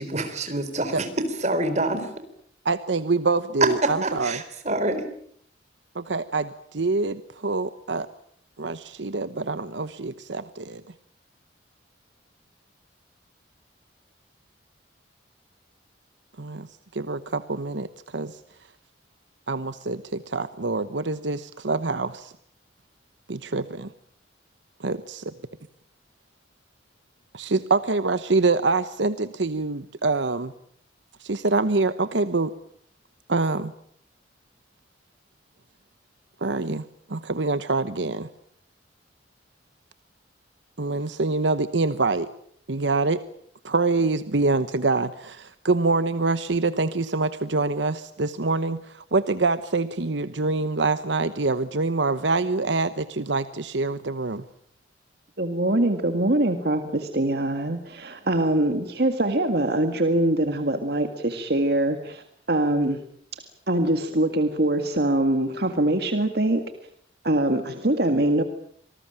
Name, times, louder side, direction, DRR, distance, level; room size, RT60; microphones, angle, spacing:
voice 1, 0.0-2.1 3.6-5.1, right 2 dB, 40° right, 9 dB, 4.2 m, -26 dB
voice 2, 2.6-4.4 5.9-8.1 8.6-10.8 16.4-16.7 16.9-17.9 18.1-18.4 19.5-22.3 23.3-23.9 24.8-25.3 27.3-30.5 31.2-32.5 33.3-33.7 36.4-36.8 37.1-38.3 40.8-42.3 42.7-43.2 43.6-54.4, right 3 dB, 80° right, 12 dB, 1.0 m, -25 dB
voice 3, 55.4-63.0 63.7-66.6 67.2-68.4, right 1 dB, 60° right, 7 dB, 1.9 m, -23 dB
26.5 x 19.5 x 8.9 m, 0.66 s
head